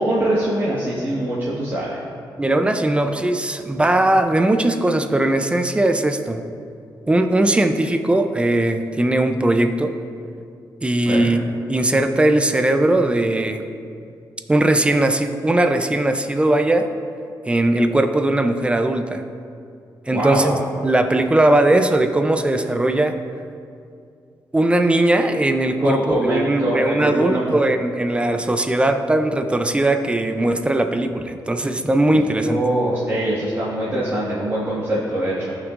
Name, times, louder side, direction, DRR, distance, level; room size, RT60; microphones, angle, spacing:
voice 1, 0.0-2.0 11.1-11.3 20.1-20.6 25.8-27.6 32.1-35.5, right 1 dB, 30° right, -9 dB, 1.6 m, -23 dB
voice 2, 2.4-6.4 7.1-10.0 10.8-11.4 11.7-13.7 14.5-16.9 17.5-19.2 20.1-20.6 20.8-23.2 24.5-32.6, right 1 dB, 15° right, 7 dB, 0.6 m, -19 dB
15.0 x 6.1 x 2.6 m, 2.4 s
cardioid pair, 100°, 8 cm